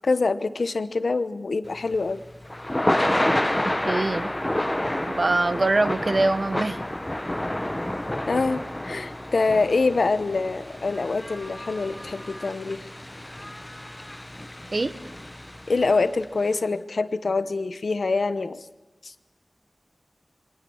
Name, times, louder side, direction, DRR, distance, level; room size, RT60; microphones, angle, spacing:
voice 1, 0.0-2.2 8.3-12.8 15.7-18.6 19.0-19.1, left 3 dB, 80° left, 13 dB, 1.0 m, -25 dB
Thunder / Rain, 1.7-16.0, left 1 dB, 20° left, 0.7 m, -29 dB
voice 2, 3.9-4.3 5.1-6.8 14.7-14.9, right 2 dB, 60° right, 12 dB, 1.1 m, -23 dB
23.0 x 18.0 x 7.1 m, 1.1 s
wide cardioid pair, 50°, 0 cm